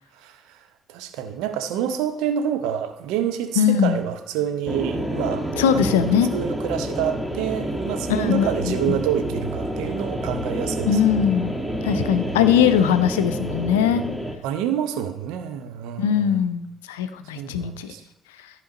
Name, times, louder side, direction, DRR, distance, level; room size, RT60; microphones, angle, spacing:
voice 1, 0.2-0.6 0.9-6.1 6.3-11.3 11.8-12.4 14.4-16.5 17.3-18.0, right 9 dB, 70° right, 7 dB, 0.7 m, -28 dB
voice 2, 3.6-4.0 5.6-6.3 8.1-9.0 10.9-11.6 11.8-14.0 16.0-17.9, left 8 dB, 80° left, 11 dB, 0.5 m, -20 dB
sound 1, 4.7-14.4, right 1 dB, ahead, 1.2 m, -28 dB
14.0 x 4.9 x 4.0 m, 0.85 s
figure-of-eight pair, 45°, 0 cm